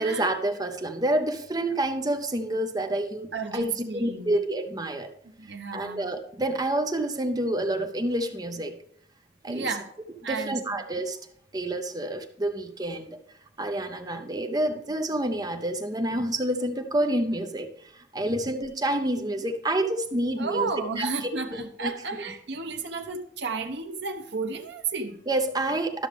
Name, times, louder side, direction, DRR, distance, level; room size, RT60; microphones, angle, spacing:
voice 1, 0.0-5.1 5.7-8.7 9.4-9.7 10.3-11.2 11.5-13.2 13.6-20.7 21.0-21.9 25.3-26.1, right 1 dB, 20° right, 7 dB, 0.6 m, -28 dB
voice 2, 3.3-4.3 5.4-6.1 9.5-9.8 10.2-10.6 20.4-25.2, right 4 dB, 65° right, 6 dB, 1.0 m, -32 dB
12.5 x 6.3 x 3.4 m, 0.67 s
head